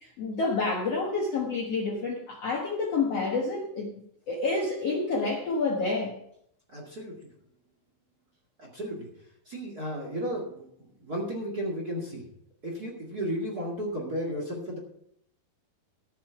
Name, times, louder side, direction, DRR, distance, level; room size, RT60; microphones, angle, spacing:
voice 1, 0.0-3.9 4.3-6.2, left 3 dB, 60° left, -1 dB, 1.8 m, -28 dB
voice 2, 6.7-7.2 8.6-9.1 9.5-12.2 12.6-14.8, equal, 30° right, -1 dB, 2.0 m, -34 dB
15.0 x 6.7 x 5.8 m, 0.71 s
omnidirectional pair, 4.6 m